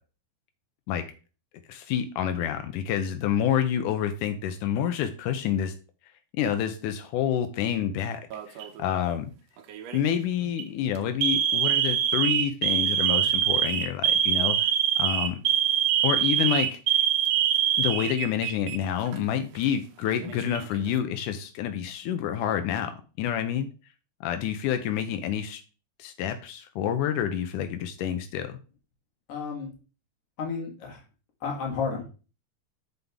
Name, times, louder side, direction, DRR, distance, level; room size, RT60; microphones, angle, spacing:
voice 1, 1.7-5.7 6.4-9.3 9.9-15.4 16.0-16.8 17.8-22.9 23.2-23.7 24.2-25.6 26.0-28.6, left 9 dB, 90° left, 8 dB, 2.3 m, -28 dB
Alarm, 8.3-8.8 9.7-10.0 10.4-10.6 11.2-18.8 19.1-19.2 20.1-20.8, right 10 dB, 70° right, 1.7 m, -24 dB
voice 2, 29.3-29.7 30.4-31.0 31.4-32.0, left 5 dB, 55° left, 1 dB, 2.6 m, -32 dB
7.7 x 5.7 x 3.5 m, 0.35 s
omnidirectional pair, 3.5 m